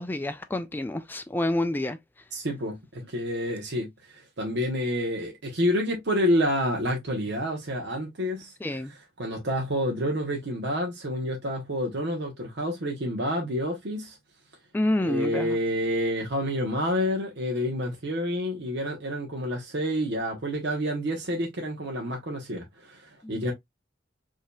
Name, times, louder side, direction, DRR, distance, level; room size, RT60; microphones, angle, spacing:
voice 1, 0.0-2.0 8.6-8.9 14.7-15.6 23.2-23.4, left 1 dB, 10° left, 0.3 m, -28 dB
voice 2, 2.3-14.2 15.0-23.5, equal, 65° right, 0.9 m, -29 dB
4.8 x 2.7 x 2.2 m
head